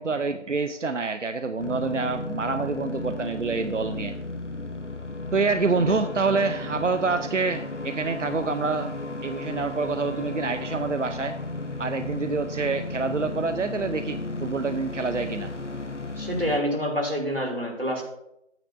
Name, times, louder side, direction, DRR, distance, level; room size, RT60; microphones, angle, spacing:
voice 1, 0.0-4.1 5.3-8.9 9.2-11.4 11.8-15.5, right 4 dB, 80° right, 9 dB, 0.7 m, -27 dB
sound 1, 1.6-16.6, left 2 dB, 75° left, 1.0 m, -34 dB
voice 2, 16.2-18.0, equal, 50° right, 0 dB, 2.7 m, -27 dB
11.5 x 9.1 x 2.6 m, 0.81 s
figure-of-eight pair, 180°, 36 cm